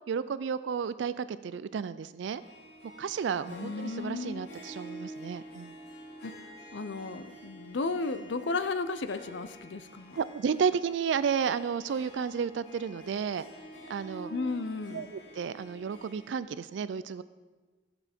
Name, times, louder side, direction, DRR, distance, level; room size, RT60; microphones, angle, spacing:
voice 1, 0.1-2.4 3.0-5.7 10.2-13.5 13.9-14.3 14.9-17.2, right 6 dB, 75° right, 15 dB, 0.3 m, -32 dB
Harp, 2.4-16.4, right 1 dB, 60° left, 3.2 m, -48 dB
voice 2, 3.5-4.5 6.2-6.3 6.7-10.2 14.3-15.1, left 3 dB, 75° left, 12 dB, 0.6 m, -34 dB
16.0 x 7.1 x 4.4 m, 1.3 s
head